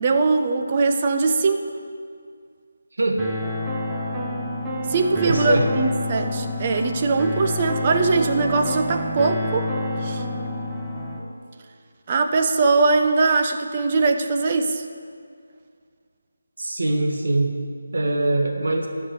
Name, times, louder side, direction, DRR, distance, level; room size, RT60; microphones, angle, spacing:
voice 1, 0.0-1.7 4.9-9.7 10.0-10.2 12.1-14.8, right 3 dB, 30° right, 6 dB, 0.8 m, -21 dB
sound 1, 3.2-11.2, left 1 dB, 10° right, 1.1 m, -28 dB
voice 2, 5.2-5.7 16.6-17.5 17.9-18.9, right 2 dB, 65° right, 2 dB, 1.7 m, -22 dB
11.5 x 5.3 x 8.2 m, 2.1 s
figure-of-eight pair, 160°, 0 cm